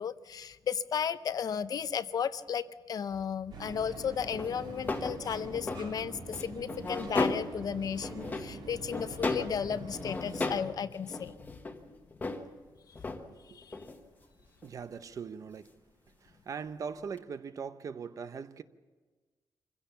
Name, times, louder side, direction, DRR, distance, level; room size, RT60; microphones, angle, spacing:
voice 1, 0.0-11.6 12.9-13.0 13.5-13.8, left 7 dB, 50° left, 0.6 m, -34 dB
sound 1, 3.5-10.5, right 3 dB, 65° right, 3.5 m, -45 dB
sound 2, 4.3-5.9 6.3-7.6 7.9-8.6 8.9-9.6 9.9-10.7 11.0-12.5 12.9-13.2 13.6-14.0 14.6-14.7 17.2-17.3, left 3 dB, 20° left, 1.3 m, -35 dB
voice 2, 13.3-13.6 14.4-15.8 16.2-18.6, right 6 dB, 45° right, 0.7 m, -41 dB
25.5 x 16.0 x 6.9 m
wide cardioid pair, 175°, 8 cm